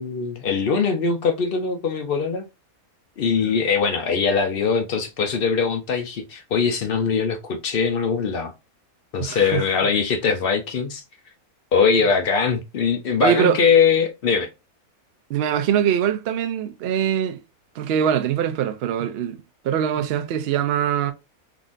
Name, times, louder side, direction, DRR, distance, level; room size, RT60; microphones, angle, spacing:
voice 1, 0.0-2.4 3.2-8.5 9.1-11.0 11.7-14.5, left 5 dB, 65° left, 0.5 m, -21 dB
voice 2, 9.2-9.7 13.2-13.6 15.3-17.4 17.8-21.1, right 9 dB, 70° right, 0.6 m, -23 dB
3.8 x 2.5 x 2.4 m
omnidirectional pair, 1.6 m